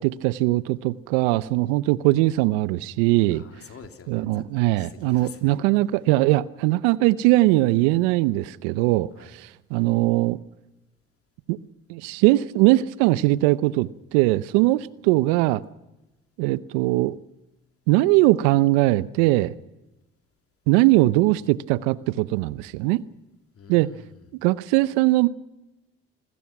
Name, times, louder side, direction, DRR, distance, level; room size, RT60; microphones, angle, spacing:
voice 1, 0.0-3.4 4.1-9.1 9.4-10.4 11.5-11.6 11.9-15.6 16.4-17.2 17.9-19.5 20.7-23.0 23.7-23.9 24.4-25.3, right 18 dB, 80° right, 0.8 m, -20 dB
voice 2, 3.3-5.6 9.1-9.4 23.5-24.3, left 6 dB, 50° left, 3.2 m, -47 dB
27.5 x 21.0 x 6.0 m
hypercardioid pair, 50°, 29 cm